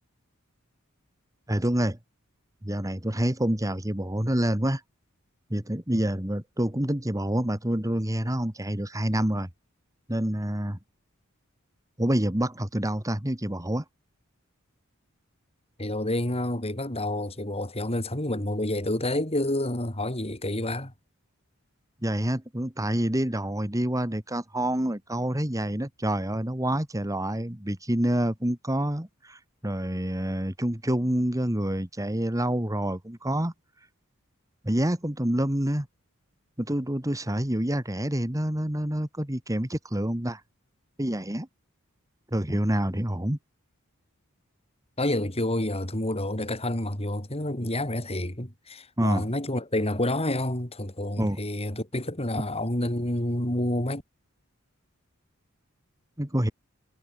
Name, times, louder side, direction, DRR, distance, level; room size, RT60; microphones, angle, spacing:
voice 1, 1.5-2.0 2.6-4.8 5.5-9.5 10.1-10.8 12.0-13.8 22.0-33.5 34.6-35.9 36.6-40.4 41.0-41.5 42.3-43.4 49.0-49.3 51.2-51.4 56.2-56.5, right 1 dB, 15° right, 2.2 m, -27 dB
voice 2, 15.8-20.9 42.5-42.6 45.0-54.0, left 1 dB, 30° left, 5.0 m, -29 dB
head